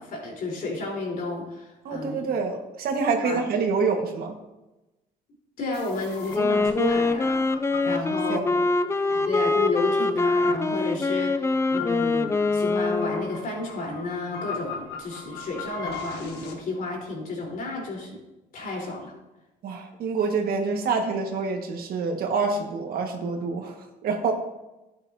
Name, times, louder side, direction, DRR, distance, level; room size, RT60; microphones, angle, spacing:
voice 1, 0.0-2.3 3.2-3.4 5.6-7.4 7.8-8.6 9.2-18.2 18.5-19.1, left 2 dB, 60° left, -2 dB, 3.8 m, -31 dB
voice 2, 1.8-4.4 7.9-8.6 19.6-24.3, right 4 dB, 65° right, 3 dB, 1.5 m, -27 dB
sound 1, 5.7-16.5, left 4 dB, 90° left, 1.4 m, -39 dB
Wind instrument woodwind instrument, 6.2-13.4, left 3 dB, 15° left, 0.5 m, -24 dB
12.0 x 8.7 x 2.7 m, 1.0 s
cardioid pair, 90°, 17 cm